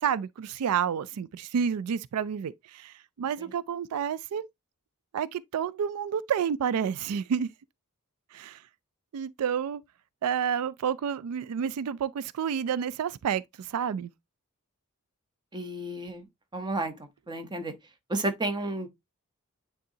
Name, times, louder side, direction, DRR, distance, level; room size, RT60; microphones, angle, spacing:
voice 1, 0.0-4.5 5.1-7.5 8.3-8.6 9.1-9.8 10.2-14.1, right 7 dB, 85° right, 0.4 m, -30 dB
voice 2, 15.5-16.2 16.5-16.9 17.3-17.7 18.1-18.9, right 2 dB, 20° right, 0.9 m, -31 dB
9.4 x 3.7 x 2.7 m
head